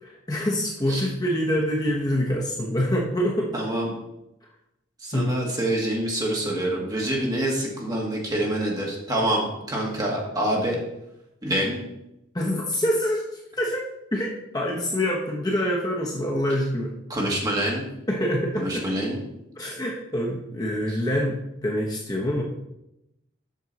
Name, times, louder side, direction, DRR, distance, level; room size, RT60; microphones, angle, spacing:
voice 1, 0.0-3.5 5.1-5.3 12.3-13.8 14.1-16.9 18.1-18.8 19.6-22.4, equal, 20° left, -2 dB, 0.9 m, -26 dB
voice 2, 3.5-3.9 5.0-10.8 11.4-11.8 17.1-17.9 18.6-19.2 20.9-21.0, right 1 dB, 20° right, -2 dB, 1.7 m, -26 dB
7.6 x 6.3 x 4.0 m, 0.87 s
head